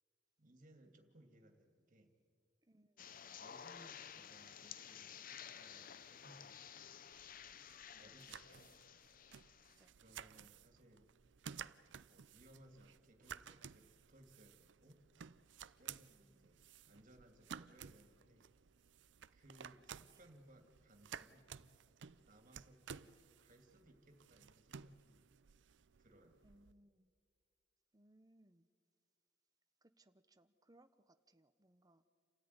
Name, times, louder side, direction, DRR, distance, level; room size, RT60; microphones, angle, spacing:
voice 1, 0.4-2.1 3.4-7.0 8.0-8.8 10.0-11.1 12.1-15.0 15.8-16.6 16.8-18.5 19.3-21.5 22.3-23.1 23.4-25.2 26.0-26.4, right 1 dB, 45° right, 5 dB, 2.6 m, -64 dB
voice 2, 2.6-3.4 7.9-8.3 9.8-10.0 16.1-16.6 20.2-20.3 26.4-27.1 27.9-28.7 29.8-32.0, right 1 dB, 20° right, 10 dB, 0.9 m, -70 dB
sound 1, 3.0-9.8, left 8 dB, 50° left, 0.7 m, -54 dB
sound 2, 7.1-26.7, right 7 dB, 80° right, 0.6 m, -55 dB
28.5 x 13.5 x 9.7 m, 2.1 s
head